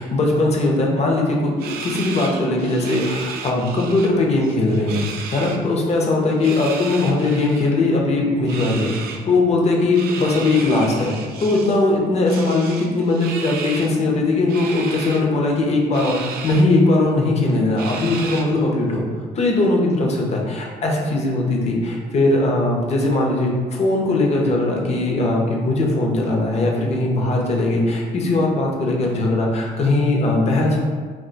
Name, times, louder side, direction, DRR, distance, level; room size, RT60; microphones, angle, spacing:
voice 1, 0.0-5.1 5.3-19.0 19.3-30.8, left 2 dB, 40° left, 0 dB, 0.6 m, -19 dB
sound 1, 1.6-4.1 4.4-5.6 6.3-7.7 8.5-9.2 9.9-11.8 12.3-13.9 14.5-15.2 15.9-16.6 17.1-17.2 17.8-18.6, right 5 dB, 65° right, 0.4 m, -34 dB
2.3 x 2.2 x 3.8 m, 1.5 s
cardioid pair, 110°, 17 cm